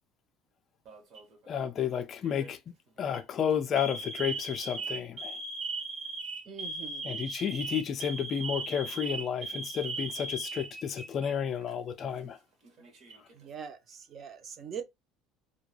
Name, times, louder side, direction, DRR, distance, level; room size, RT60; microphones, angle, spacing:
Alarm, 0.9-1.4 2.2-2.5 3.0-3.2 3.8-11.3 11.6-11.7 12.6-13.3, right 3 dB, 50° right, 1.0 m, -38 dB
voice 1, 1.5-2.6 3.0-5.4 7.0-12.4, left 8 dB, 35° left, 0.3 m, -31 dB
voice 2, 6.5-7.1 13.3-14.8, right 7 dB, 35° right, 0.5 m, -42 dB
2.2 x 2.1 x 3.1 m
cardioid pair, 140°, 0 cm